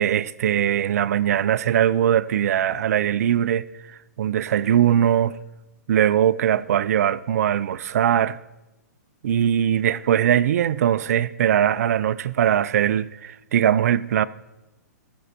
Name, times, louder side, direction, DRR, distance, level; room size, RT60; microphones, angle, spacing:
voice 1, 0.0-3.7 4.2-5.4 5.9-8.4 9.2-14.3, right 10 dB, 60° right, 0.4 m, -21 dB
14.0 x 5.4 x 6.5 m
hypercardioid pair, 120°, 9 cm